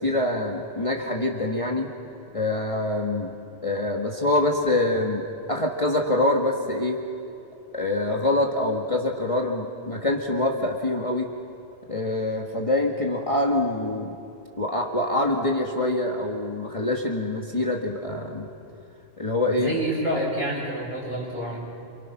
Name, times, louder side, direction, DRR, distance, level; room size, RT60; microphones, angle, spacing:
voice 1, 0.0-1.9 2.3-3.4 3.6-7.0 7.7-11.3 11.9-14.2 14.6-18.5 19.2-19.8, left 1 dB, 30° left, 0 dB, 1.8 m, -25 dB
voice 2, 19.5-21.6, right 1 dB, 45° right, -5 dB, 8.4 m, -28 dB
28.5 x 28.0 x 6.0 m, 2.8 s
omnidirectional pair, 1.2 m